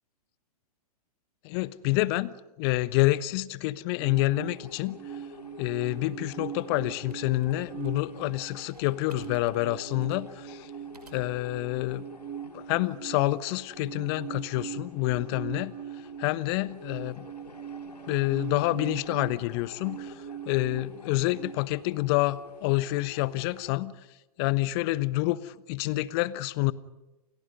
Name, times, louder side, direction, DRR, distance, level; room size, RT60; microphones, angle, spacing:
voice 1, 1.4-5.0 5.6-10.7 11.1-12.0 12.5-15.7 16.2-17.3 18.1-20.1 20.5-24.0 24.4-26.7, left 18 dB, 40° left, 17 dB, 1.1 m, -28 dB
sound 1, 4.0-21.5, right 10 dB, 35° right, 4.5 m, -42 dB
sound 2, 4.1-23.8, left 3 dB, 85° left, 2.5 m, -49 dB
sound 3, 7.1-11.5, right 3 dB, 90° right, 5.8 m, -57 dB
29.5 x 28.5 x 5.5 m, 1.0 s
figure-of-eight pair, 110°, 20 cm